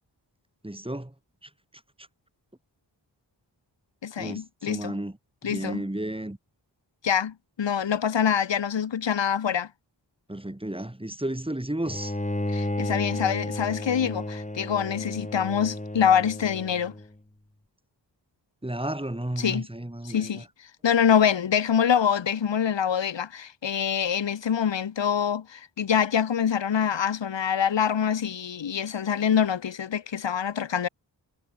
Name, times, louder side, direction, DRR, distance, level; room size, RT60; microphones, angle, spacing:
voice 1, 0.6-1.1 4.2-5.2 5.4-6.4 10.3-12.1 18.6-20.4, right 1 dB, 10° right, 3.7 m, -32 dB
voice 2, 4.0-4.9 5.4-5.8 7.0-9.7 12.5-16.9 19.4-19.7 20.0-20.4 20.8-30.9, left 8 dB, 80° left, 1.2 m, -25 dB
Bowed string instrument, 11.9-17.1, left 1 dB, 15° left, 3.9 m, -32 dB
wide cardioid pair, 70°, 43 cm